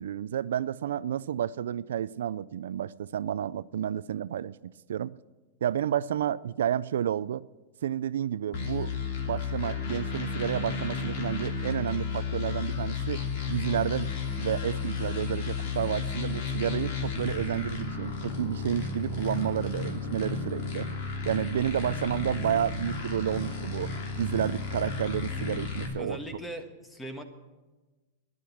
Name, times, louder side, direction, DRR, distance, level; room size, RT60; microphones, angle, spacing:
voice 1, 0.0-5.2 5.6-7.4 7.8-8.9 9.3-14.1 14.4-20.9 21.2-26.2, right 10 dB, 90° right, 0.3 m, -31 dB
sound 1, 8.5-25.9, left 5 dB, 60° left, 2.9 m, -33 dB
voice 2, 26.0-27.2, equal, 5° left, 1.4 m, -39 dB
13.0 x 11.0 x 7.1 m
supercardioid pair, 150°, 0 cm